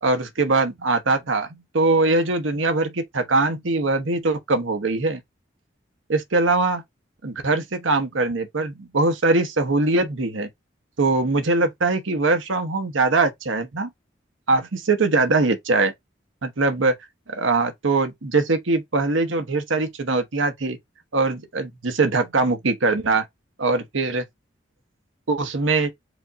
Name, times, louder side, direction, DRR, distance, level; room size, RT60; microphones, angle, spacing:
voice 1, 0.0-5.2 6.1-6.8 7.2-10.5 11.0-13.9 14.5-15.9 16.4-16.9 17.3-20.8 21.1-23.2 23.6-24.2 25.3-25.9, right 3 dB, 80° right, 1.0 m, -22 dB
5.0 x 2.5 x 4.0 m
head